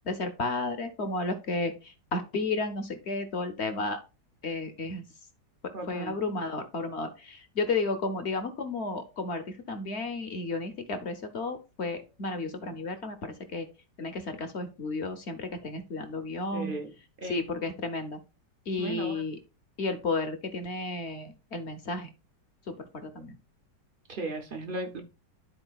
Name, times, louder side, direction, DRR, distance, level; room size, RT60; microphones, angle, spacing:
voice 1, 0.1-4.0 4.4-5.1 5.8-13.7 14.0-16.8 17.2-18.2 18.7-19.4 19.8-22.1 22.7-23.4, left 3 dB, 50° left, 0.8 m, -33 dB
voice 2, 5.7-6.1 16.5-16.9 17.2-17.4 18.8-19.2 24.1-25.0, right 2 dB, 60° right, 0.5 m, -36 dB
12.5 x 4.2 x 2.3 m
omnidirectional pair, 1.9 m